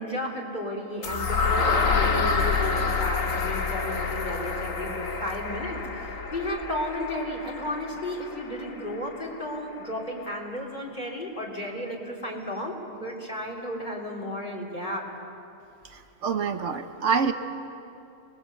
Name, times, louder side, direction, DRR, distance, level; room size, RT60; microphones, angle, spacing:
voice 1, 0.0-15.0, left 1 dB, 35° left, -2 dB, 4.0 m, -33 dB
sound 1, 1.0-9.0, left 4 dB, 85° left, 2.0 m, -28 dB
voice 2, 16.2-17.3, right 6 dB, 70° right, 7 dB, 1.3 m, -25 dB
27.0 x 20.0 x 8.3 m, 2.8 s
omnidirectional pair, 1.3 m